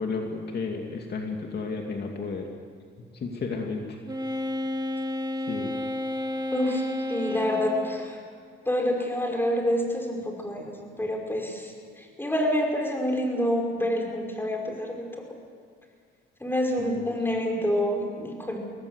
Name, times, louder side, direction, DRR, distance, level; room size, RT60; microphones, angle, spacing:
voice 1, 0.0-2.5 3.1-4.0 5.3-5.7 16.8-17.1, left 4 dB, 55° left, 2 dB, 2.5 m, -32 dB
Wind instrument woodwind instrument, 4.1-8.1, left 1 dB, 20° right, 1.8 m, -31 dB
voice 2, 6.5-8.2 8.7-15.3 16.4-18.6, equal, 10° left, 1 dB, 5.4 m, -27 dB
23.5 x 18.0 x 8.2 m, 2.1 s
cardioid pair, 90°, 20 cm